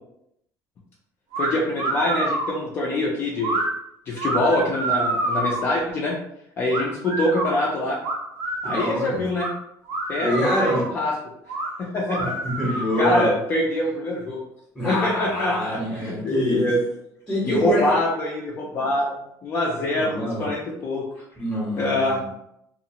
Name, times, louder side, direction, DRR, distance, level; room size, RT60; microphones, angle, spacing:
sound 1, 1.3-1.5 1.8-2.5 3.4-3.7 4.2-5.7 6.7-7.5 8.0-9.0 9.4-9.5 9.9-10.9 11.5-11.7 12.1-13.2, right 2 dB, 90° right, 0.6 m, -27 dB
voice 1, 1.4-3.6 4.1-6.2 6.6-8.0 8.6-9.5 10.1-11.1 11.8-12.3 12.7-14.4 14.8-16.8 17.4-19.1 19.4-21.0 21.8-22.2, left 1 dB, 30° left, -4 dB, 0.4 m, -24 dB
voice 2, 8.6-9.3 10.2-10.8 12.2-13.3 14.7-16.7 17.3-17.9 19.9-20.5 21.4-22.3, equal, 5° left, -6 dB, 0.8 m, -25 dB
2.7 x 2.4 x 2.8 m, 0.79 s
cardioid pair, 165°, 7 cm